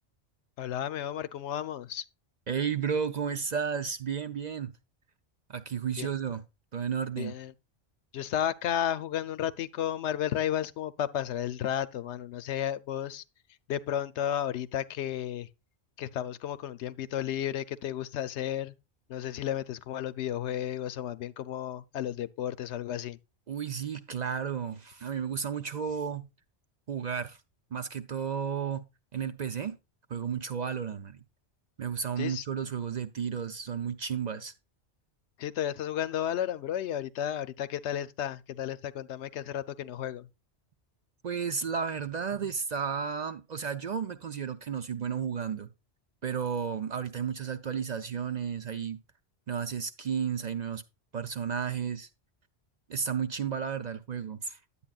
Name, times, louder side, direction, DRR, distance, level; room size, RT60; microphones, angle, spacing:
voice 1, 0.6-2.0 6.0-6.1 7.2-7.5 8.1-13.2 13.7-15.5 16.0-18.7 19.1-23.2 32.2-32.5 35.4-40.3, left 10 dB, 85° left, 0.9 m, -33 dB
voice 2, 2.5-4.7 5.5-6.4 6.7-7.3 23.5-26.2 26.9-27.4 27.7-28.8 29.1-29.8 30.1-31.2 31.8-34.5 41.2-45.7 46.2-49.0 49.5-50.8 51.1-52.1 52.9-54.6, right 7 dB, 50° right, 0.6 m, -33 dB
10.0 x 8.6 x 2.3 m
omnidirectional pair, 1.1 m